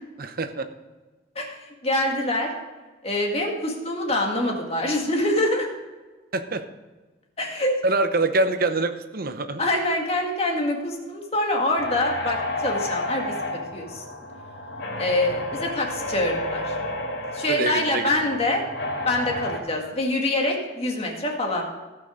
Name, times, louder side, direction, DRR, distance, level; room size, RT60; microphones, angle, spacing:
voice 1, 0.2-0.7 6.3-6.6 7.8-9.6 17.5-18.1, right 2 dB, 50° right, 9 dB, 0.9 m, -25 dB
voice 2, 1.8-2.5 3.0-5.7 7.4-7.8 9.6-14.0 15.0-16.7 17.3-18.6 19.1-21.6, left 1 dB, 30° left, 0 dB, 1.9 m, -25 dB
sound 1, 11.8-19.6, left 1 dB, 85° left, 3.4 m, -31 dB
17.0 x 6.1 x 5.0 m, 1.3 s
head